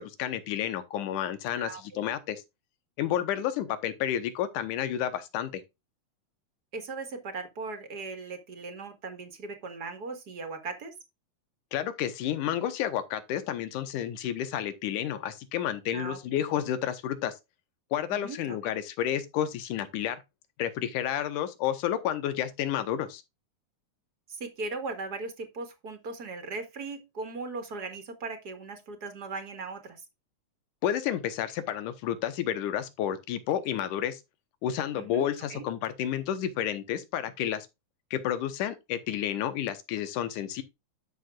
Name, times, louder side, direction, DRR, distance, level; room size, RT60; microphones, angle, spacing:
voice 1, 0.0-2.4 3.0-5.6 11.7-17.3 17.9-20.2 20.6-23.2 30.8-34.2 34.6-37.7 38.1-40.6, left 10 dB, 90° left, 2.5 m, -30 dB
voice 2, 1.5-2.0 6.7-10.9 15.9-16.2 18.1-18.6 24.3-30.0 34.9-35.7, right 3 dB, 40° right, 1.7 m, -38 dB
11.0 x 6.6 x 2.4 m
omnidirectional pair, 3.5 m